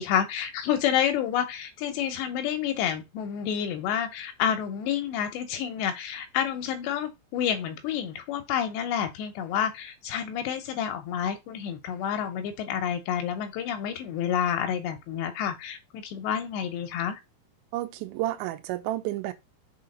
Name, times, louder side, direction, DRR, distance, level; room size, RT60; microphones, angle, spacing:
voice 1, 0.0-17.2, left 9 dB, 80° left, 2.7 m, -29 dB
voice 2, 17.7-19.3, right 15 dB, 80° right, 2.9 m, -31 dB
6.6 x 4.4 x 5.3 m
omnidirectional pair, 5.7 m